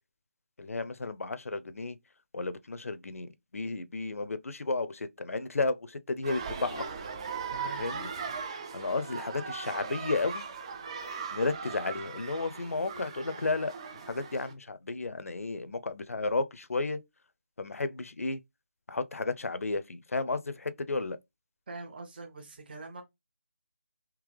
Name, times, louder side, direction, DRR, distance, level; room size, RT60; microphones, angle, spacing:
voice 1, 0.6-2.0 2.3-6.9 7.8-8.1 8.7-10.4 11.3-13.7 14.1-17.0 17.6-18.4 18.9-21.2, left 3 dB, 75° left, 0.6 m, -33 dB
sound 1, 6.2-14.5, right 5 dB, 20° right, 0.4 m, -39 dB
voice 2, 7.5-7.8 21.7-23.0, right 3 dB, 40° right, 1.2 m, -43 dB
3.7 x 2.9 x 3.2 m
figure-of-eight pair, 165°, 8 cm